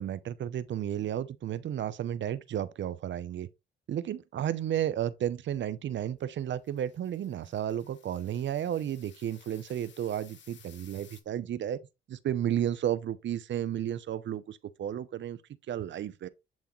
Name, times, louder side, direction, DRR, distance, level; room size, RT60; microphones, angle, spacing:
voice 1, 0.0-3.5 3.9-11.8 12.1-15.4 15.7-16.3, right 10 dB, 65° right, 0.7 m, -33 dB
sound 1, 6.4-11.2, left 7 dB, 60° left, 1.2 m, -58 dB
10.5 x 3.5 x 3.1 m
supercardioid pair, 60°, 21 cm